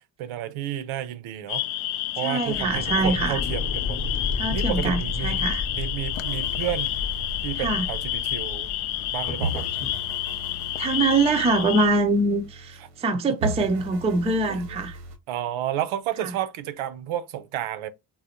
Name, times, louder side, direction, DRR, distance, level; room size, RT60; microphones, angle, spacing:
voice 1, 0.2-1.6 2.2-4.0 4.5-5.5 5.7-6.9 7.4-8.7 9.1-9.7 14.5-14.8 15.3-17.9, right 11 dB, 75° right, 0.6 m, -31 dB
sound 1, 1.5-11.9, left 13 dB, 80° left, 0.6 m, -30 dB
voice 2, 2.2-3.4 4.4-5.6 7.6-7.9 10.8-15.0 16.2-16.3, right 2 dB, 15° right, 0.3 m, -24 dB
sound 2, 2.4-10.0, left 4 dB, 25° left, 0.6 m, -32 dB
sound 3, 6.1-9.1 9.4-13.1 13.4-15.2, right 3 dB, 90° right, 1.0 m, -37 dB
3.9 x 2.0 x 2.8 m
cardioid pair, 120°, 50 cm